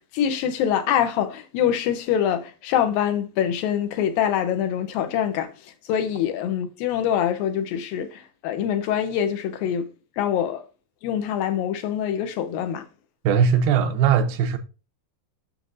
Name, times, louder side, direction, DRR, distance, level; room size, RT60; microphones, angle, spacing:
voice 1, 0.0-5.5 5.9-9.9 10.2-10.6 11.0-12.8, left 9 dB, 75° left, 2.5 m, -24 dB
voice 2, 13.2-14.6, right 7 dB, 85° right, 2.6 m, -19 dB
7.5 x 6.6 x 2.6 m
omnidirectional pair, 4.2 m